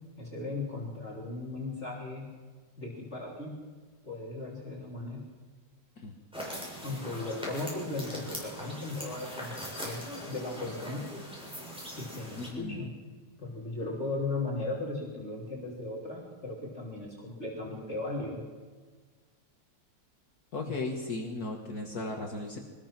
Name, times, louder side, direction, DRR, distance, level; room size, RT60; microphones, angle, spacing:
voice 1, 0.2-2.3 2.8-3.6 4.0-5.2 6.8-10.0 10.3-11.1 12.0-12.9 13.4-18.4, left 2 dB, 35° left, -4 dB, 3.6 m, -37 dB
sound 1, 6.3-12.5, equal, 5° right, 6.9 m, -41 dB
voice 2, 12.4-12.9 20.5-22.6, left 2 dB, 55° left, 2 dB, 2.1 m, -36 dB
24.0 x 20.0 x 6.0 m, 1.5 s
omnidirectional pair, 2.0 m